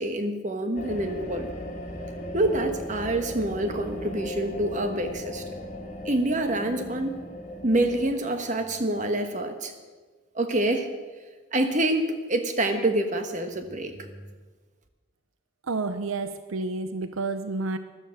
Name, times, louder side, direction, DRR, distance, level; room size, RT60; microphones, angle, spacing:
voice 1, 0.0-1.5 2.3-5.4 6.0-7.2 7.6-9.7 10.3-10.9 11.5-14.1, right 1 dB, 35° right, 6 dB, 1.4 m, -26 dB
sound 1, 0.8-8.1, left 1 dB, 35° left, 2.1 m, -37 dB
voice 2, 15.7-17.8, right 3 dB, 80° right, 10 dB, 0.7 m, -30 dB
14.5 x 12.5 x 6.5 m, 1.4 s
head